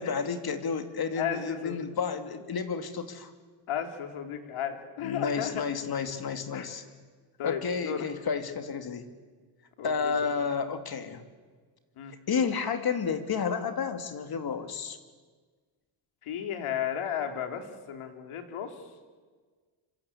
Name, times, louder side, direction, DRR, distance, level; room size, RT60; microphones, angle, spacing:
voice 1, 0.0-3.3 5.0-6.8 7.4-9.0 9.8-11.2 12.3-15.0, left 6 dB, 45° left, 8 dB, 2.7 m, -31 dB
voice 2, 1.2-1.8 3.7-5.6 6.5-6.7 7.4-8.1 9.8-10.1 12.0-12.1 16.2-18.7, left 8 dB, 85° left, 5 dB, 3.6 m, -34 dB
26.0 x 26.0 x 8.6 m, 1.5 s
cardioid pair, 115°, 49 cm